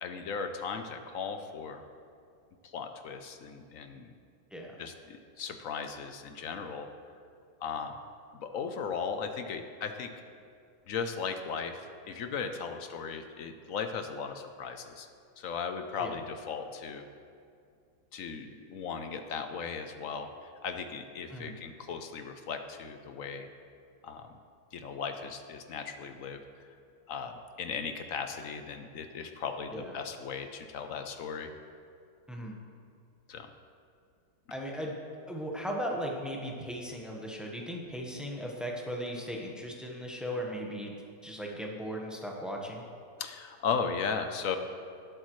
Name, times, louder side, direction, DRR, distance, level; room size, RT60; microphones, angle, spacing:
voice 1, 0.0-1.8 2.6-4.1 4.8-6.9 7.6-8.0 8.4-10.1 10.9-15.1 15.4-17.1 18.1-23.5 24.0-24.3 24.7-26.4 27.1-31.5 33.3-33.5 43.2-44.6, left 6 dB, 60° left, 7 dB, 0.9 m, -37 dB
voice 2, 34.5-35.0 35.3-41.0 41.2-42.8, equal, ahead, -1 dB, 0.9 m, -37 dB
18.5 x 8.2 x 3.2 m, 2.4 s
omnidirectional pair, 1.9 m